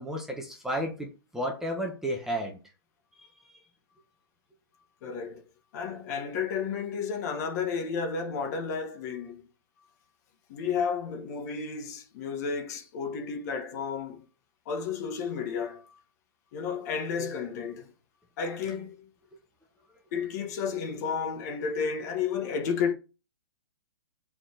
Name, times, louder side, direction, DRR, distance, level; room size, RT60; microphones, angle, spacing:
voice 1, 0.0-2.6 3.2-3.6, equal, 5° right, 1.3 m, -33 dB
voice 2, 5.0-5.4 5.7-9.4 10.5-14.2 14.6-15.8 16.5-17.9 18.4-19.0 20.1-22.9, left 6 dB, 40° left, 1.5 m, -32 dB
7.0 x 4.5 x 5.1 m
hypercardioid pair, 155°, 14 cm